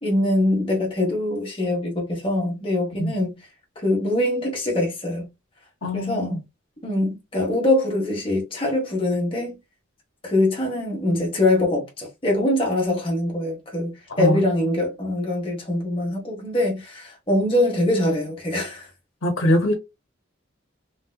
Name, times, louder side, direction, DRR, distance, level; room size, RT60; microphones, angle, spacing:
voice 1, 0.0-3.3 3.8-5.3 5.9-6.4 6.8-9.6 10.2-18.9, left 1 dB, 25° left, 1.2 m, -23 dB
voice 2, 5.8-6.4 14.1-14.4 19.2-19.7, equal, 80° left, 1.0 m, -22 dB
3.3 x 2.8 x 2.3 m
head